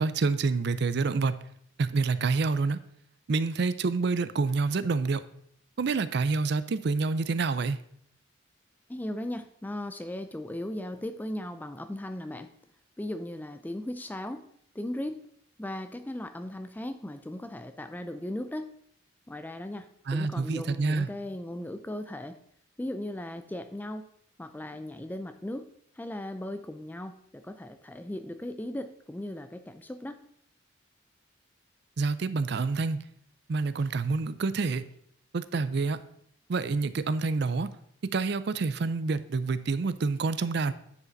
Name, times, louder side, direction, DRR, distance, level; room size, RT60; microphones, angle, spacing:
voice 1, 0.0-1.4 1.8-2.8 3.3-5.2 5.8-7.8 20.1-21.1 32.0-33.0 33.5-34.9 35.3-36.0 36.5-37.7 38.1-40.7, right 4 dB, 55° right, 14 dB, 0.4 m, -27 dB
voice 2, 8.9-12.5 13.0-14.5 14.8-15.2 15.6-18.7 19.3-22.4 22.8-24.1 24.4-25.7 26.0-30.1, left 1 dB, 10° left, 9 dB, 0.3 m, -37 dB
9.6 x 5.0 x 3.9 m, 0.69 s
head